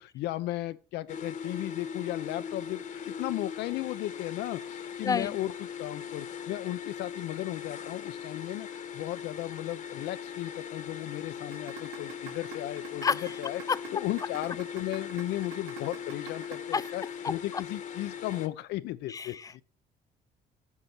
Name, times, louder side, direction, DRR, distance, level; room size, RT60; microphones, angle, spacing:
voice 1, 0.0-5.5 5.8-13.6 13.9-19.6, left 16 dB, 85° left, 0.8 m, -35 dB
sound 1, 1.1-18.5, left 7 dB, 50° left, 1.2 m, -40 dB
voice 2, 5.0-5.4 13.0-13.4 13.7-13.8 16.7-16.9 17.2-17.6 19.1-19.6, left 5 dB, 20° left, 0.4 m, -30 dB
sound 2, 11.5-17.5, right 9 dB, 90° right, 3.1 m, -44 dB
8.4 x 5.9 x 6.6 m
cardioid pair, 110°, 17 cm